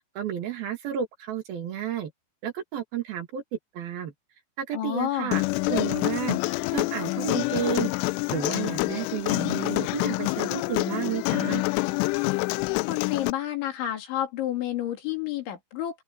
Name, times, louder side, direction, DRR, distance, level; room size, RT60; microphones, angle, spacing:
voice 1, 0.1-2.1 2.4-3.4 3.7-4.1 4.6-5.4 5.7-6.4 6.7-7.9 8.3-11.6, right 9 dB, 60° right, 3.4 m, -31 dB
voice 2, 4.7-5.3 12.9-16.0, left 12 dB, 70° left, 5.3 m, -30 dB
Human voice, 5.3-13.3, left 24 dB, 90° left, 3.1 m, -27 dB
open air
omnidirectional pair, 5.5 m